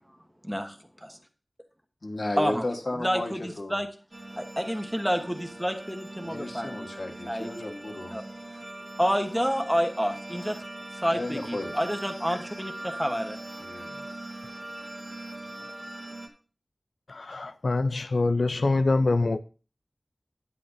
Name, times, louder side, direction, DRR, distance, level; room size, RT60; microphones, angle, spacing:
voice 1, 2.0-3.8 6.2-8.1 11.1-11.7 13.6-14.1, left 2 dB, 65° left, 1.5 m, -34 dB
voice 2, 3.0-3.9 4.4-6.9 7.3-7.5 8.1-8.2 9.0-10.6 11.0-13.4, equal, 5° right, 1.2 m, -29 dB
sound 1, 4.1-16.3, right 1 dB, 50° right, 1.7 m, -41 dB
voice 3, 17.1-19.4, left 3 dB, 90° left, 0.5 m, -25 dB
9.7 x 9.3 x 2.7 m
wide cardioid pair, 65°, 0 cm